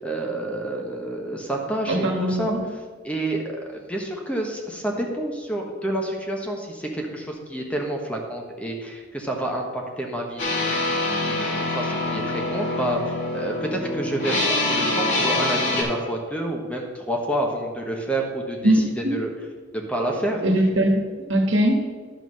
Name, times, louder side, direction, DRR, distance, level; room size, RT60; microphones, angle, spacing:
voice 1, 0.0-2.5 3.0-10.6 11.2-19.3 19.7-20.4, right 1 dB, 5° left, 1 dB, 1.0 m, -29 dB
voice 2, 1.8-2.6 18.6-19.2 20.4-21.0 21.3-21.8, right 1 dB, 70° right, 2 dB, 1.5 m, -21 dB
sound 1, 10.4-15.8, left 2 dB, 65° left, 2.1 m, -25 dB
11.0 x 3.8 x 6.3 m, 1.5 s
head